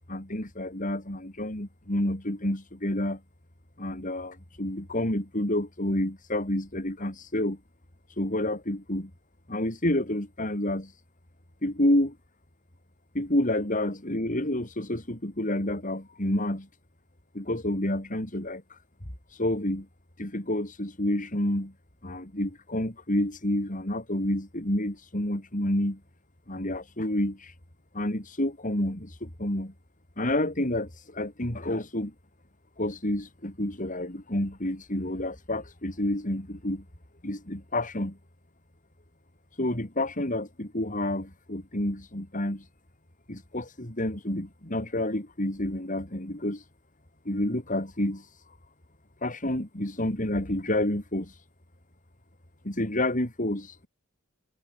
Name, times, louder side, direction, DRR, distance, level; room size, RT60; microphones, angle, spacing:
voice 1, 0.1-3.2 3.8-7.6 8.2-9.1 9.5-10.9 11.6-12.2 13.1-16.7 17.3-18.8 19.3-19.9 20.2-21.7 22.0-26.0 26.5-27.5 27.9-29.7 30.2-32.1 32.8-36.8 37.2-38.2 39.6-42.7 43.3-46.6 47.2-48.6 49.2-51.4 52.6-53.9, left 1 dB, 40° left, 4.5 m, -29 dB
head